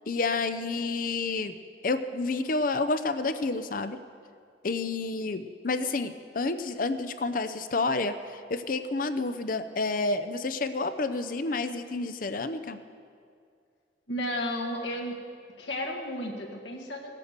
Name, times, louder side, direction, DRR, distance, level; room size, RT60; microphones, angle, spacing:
voice 1, 0.1-1.6 1.8-4.0 4.6-12.8, left 3 dB, 50° left, 10 dB, 0.6 m, -29 dB
voice 2, 14.1-15.2 15.6-17.2, left 1 dB, 85° left, 0 dB, 1.9 m, -33 dB
17.5 x 8.3 x 6.7 m, 2.2 s
head